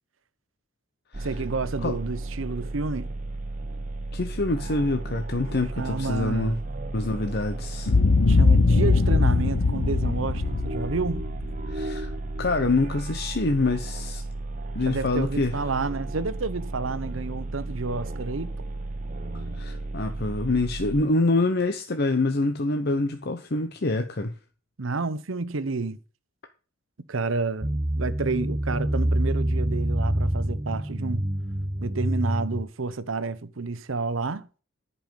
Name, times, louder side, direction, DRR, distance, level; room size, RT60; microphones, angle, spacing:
sound 1, 1.1-21.0, right 2 dB, 40° right, 1.2 m, -34 dB
voice 1, 1.2-3.1 5.8-6.6 8.2-11.3 14.8-18.5 24.8-26.0 27.1-31.3 31.8-34.5, right 3 dB, 90° right, 0.8 m, -30 dB
voice 2, 4.1-6.6 6.9-7.9 11.7-12.1 12.4-14.2 14.7-15.6 19.5-24.3, left 2 dB, 55° left, 0.9 m, -26 dB
Boom, 7.9-12.1, left 3 dB, 85° left, 0.7 m, -21 dB
sound 2, 27.6-32.6, right 1 dB, 20° right, 0.9 m, -26 dB
10.5 x 5.6 x 7.2 m
head